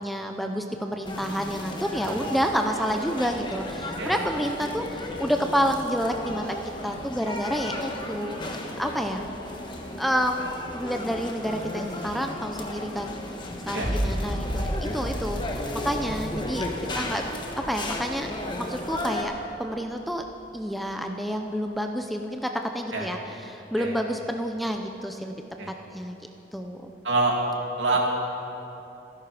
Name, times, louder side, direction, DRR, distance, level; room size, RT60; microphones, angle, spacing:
voice 1, 0.0-8.5 8.8-9.2 10.0-13.2 13.7-16.6 16.9-17.2 17.7-18.3 18.6-19.3 19.6-20.2 20.5-25.4 25.9-26.2 26.5-26.9, equal, ahead, 4 dB, 0.6 m, -29 dB
sound 1, 1.0-19.2, left 1 dB, 25° left, 1.3 m, -34 dB
sound 2, 13.8-19.3 19.7-20.3, equal, 35° right, 1.7 m, -33 dB
voice 2, 27.0-27.4 27.8-28.0, right 3 dB, 80° right, 0 dB, 2.6 m, -25 dB
26.0 x 11.0 x 5.0 m, 3.0 s
head